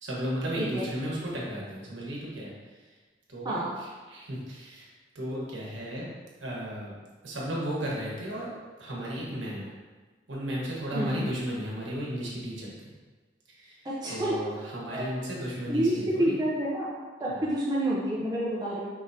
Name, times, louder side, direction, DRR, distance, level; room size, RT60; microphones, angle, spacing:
voice 1, 0.0-2.5 3.3-4.9 5.1-6.1 6.4-7.0 7.2-8.5 8.8-9.7 10.3-12.7 13.5-13.8 14.1-16.4 17.3-17.4, equal, 85° right, -4 dB, 1.1 m, -34 dB
voice 2, 3.4-3.8 10.9-11.2 13.8-14.4 14.9-15.1 15.4-17.0 17.2-18.9, right 1 dB, 20° right, -6 dB, 0.5 m, -29 dB
5.2 x 3.2 x 2.7 m, 1.4 s
head